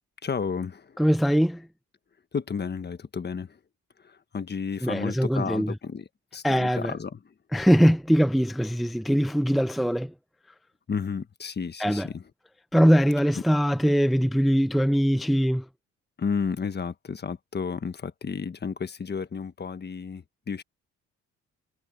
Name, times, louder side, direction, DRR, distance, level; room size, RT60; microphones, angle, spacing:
voice 1, 0.2-1.0 2.3-3.6 4.0-7.3 10.9-12.2 13.3-13.4 16.2-20.6, left 5 dB, 35° left, 1.4 m, -32 dB
voice 2, 1.0-1.7 4.8-5.7 6.4-6.9 7.5-10.1 11.8-12.1 12.7-15.7, equal, ahead, 0.6 m, -22 dB
cardioid pair, 90°, 30 cm